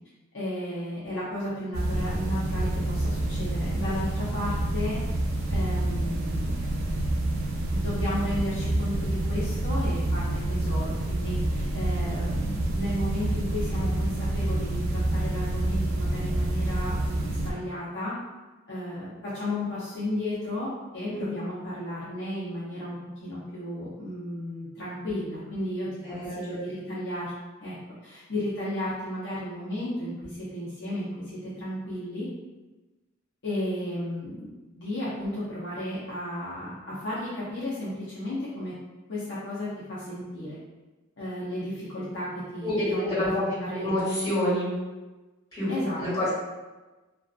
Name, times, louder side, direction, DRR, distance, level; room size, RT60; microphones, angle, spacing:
voice 1, 0.3-5.0 5.5-6.9 7.7-18.1 18.7-27.3 27.6-27.7 28.0-32.3 33.4-34.5 34.8-38.7 39.1-40.6 41.2-43.9 45.7-46.3, left 1 dB, 60° left, -11 dB, 0.7 m, -34 dB
sound 1, 1.7-17.5, right 1 dB, 80° right, 0.4 m, -28 dB
voice 2, 26.0-26.6 42.6-43.4 43.7-44.7 45.5-45.7 46.0-46.3, left 1 dB, 20° left, -12 dB, 1.5 m, -28 dB
2.4 x 2.4 x 2.3 m, 1.2 s
head